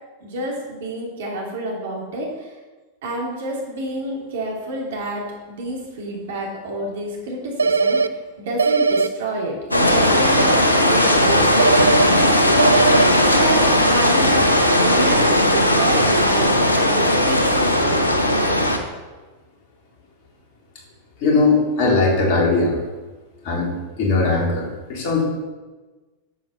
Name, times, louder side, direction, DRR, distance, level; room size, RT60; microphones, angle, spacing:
voice 1, 0.2-2.5 3.0-12.6 13.1-14.4 14.8-16.5 16.7-18.1, right 1 dB, 60° right, -1 dB, 2.8 m, -29 dB
sound 1, 7.6-8.1 8.6-9.1 11.6-12.1 12.6-13.1, right 4 dB, 75° right, 0.4 m, -18 dB
sound 2, 9.7-18.8, left 1 dB, 85° left, 1.0 m, -17 dB
voice 2, 21.2-22.8 23.4-23.7 24.0-25.2, left 3 dB, 45° left, -2 dB, 3.3 m, -19 dB
9.1 x 7.9 x 5.5 m, 1.2 s
figure-of-eight pair, 90°, 0 cm